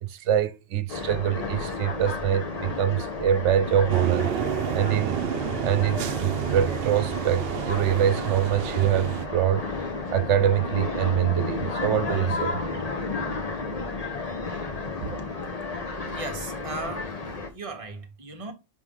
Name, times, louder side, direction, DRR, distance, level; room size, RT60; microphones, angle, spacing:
voice 1, 0.0-4.3 4.7-5.2 5.6-9.6 10.1-12.7, right 10 dB, 90° right, 0.9 m, -24 dB
sound 1, 0.9-17.5, left 3 dB, 35° left, 0.9 m, -32 dB
sound 2, 3.9-9.3, right 10 dB, 60° right, 0.8 m, -30 dB
voice 2, 16.1-18.5, right 3 dB, 30° right, 1.0 m, -37 dB
5.4 x 4.8 x 3.7 m
omnidirectional pair, 1.2 m